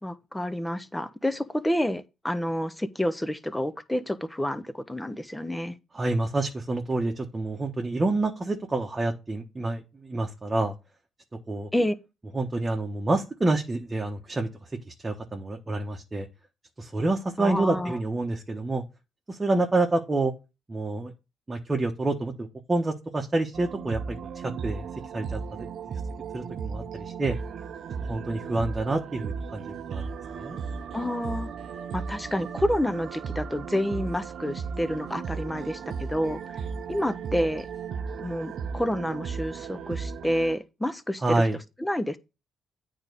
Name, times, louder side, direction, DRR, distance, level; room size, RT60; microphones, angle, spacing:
voice 1, 0.0-5.7 11.7-11.9 17.4-18.0 30.9-31.5 31.9-36.4 36.9-37.7 38.2-41.4 41.8-42.2, equal, 10° left, 0.9 m, -29 dB
voice 2, 5.9-10.7 11.5-11.7 12.3-14.5 14.9-16.3 16.8-18.8 19.3-20.3 20.7-21.1 21.5-24.9 25.1-26.0 26.3-27.4 28.1-30.0 30.4-30.6 41.2-41.6, right 2 dB, 20° right, 1.2 m, -28 dB
sound 1, 23.5-40.6, right 6 dB, 60° right, 0.8 m, -35 dB
8.9 x 3.7 x 6.8 m
cardioid pair, 85°, 0 cm